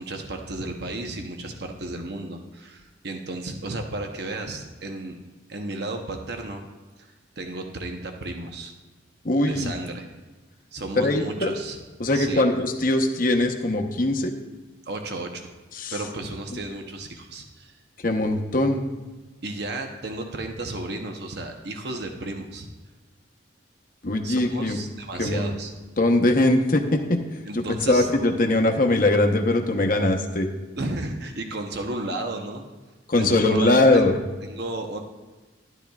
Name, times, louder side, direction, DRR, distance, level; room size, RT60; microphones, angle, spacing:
voice 1, 0.0-5.2 5.5-6.6 7.0-8.7 9.5-10.1 10.7-11.8 12.1-12.4 14.9-15.5 15.9-17.8 19.4-22.7 24.2-25.7 27.5-28.1 30.8-32.6 33.2-34.1 34.4-35.0, right 2 dB, 55° right, 4 dB, 0.8 m, -33 dB
voice 2, 9.2-9.7 11.0-11.5 12.0-14.3 15.8-15.9 18.0-18.8 24.0-24.8 25.2-25.5 26.0-27.2 27.5-30.5 33.1-34.1, left 2 dB, 45° left, 3 dB, 0.9 m, -21 dB
12.0 x 11.0 x 2.4 m, 1.3 s
head